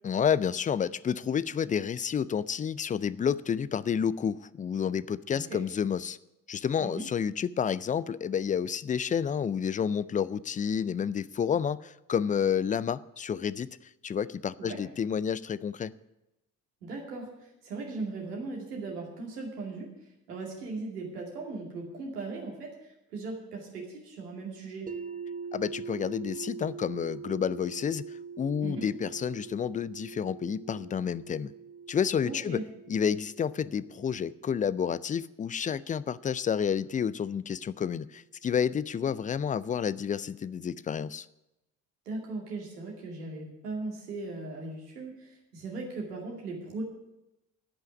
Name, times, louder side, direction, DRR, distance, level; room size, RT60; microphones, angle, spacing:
voice 1, 0.0-6.2 6.5-13.7 14.0-15.9 25.5-28.0 28.4-31.5 31.9-32.6 32.9-41.3, left 7 dB, 20° left, 18 dB, 0.3 m, -30 dB
voice 2, 16.8-19.9 20.3-24.9 28.6-28.9 32.2-32.6 42.1-46.8, right 3 dB, 85° right, -1 dB, 2.5 m, -38 dB
sound 1, 24.9-36.8, right 6 dB, 20° right, 1.0 m, -44 dB
13.5 x 5.7 x 9.5 m, 0.93 s
figure-of-eight pair, 50°, 46 cm